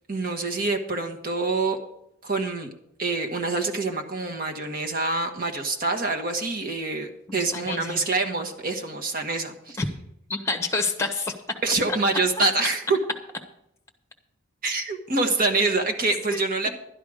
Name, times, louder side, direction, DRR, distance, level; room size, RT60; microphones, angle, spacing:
voice 1, 0.1-1.8 2.2-2.7 3.0-9.8 11.6-13.0 14.6-16.7, right 3 dB, 45° right, 3 dB, 1.3 m, -26 dB
voice 2, 7.3-8.0 9.8-9.9 10.3-11.3 12.4-12.5, left 3 dB, 15° left, 5 dB, 1.2 m, -28 dB
12.0 x 10.5 x 5.0 m, 0.78 s
head